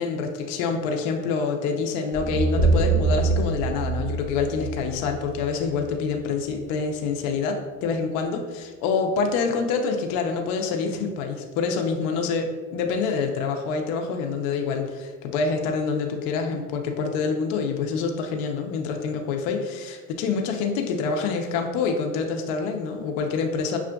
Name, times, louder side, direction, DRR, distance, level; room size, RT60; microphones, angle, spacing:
voice 1, 0.0-23.8, left 5 dB, 70° left, 3 dB, 0.7 m, -26 dB
sound 1, 2.1-6.3, right 3 dB, 35° right, 0.8 m, -25 dB
5.9 x 2.4 x 2.3 m, 1.4 s
supercardioid pair, 110°, 42 cm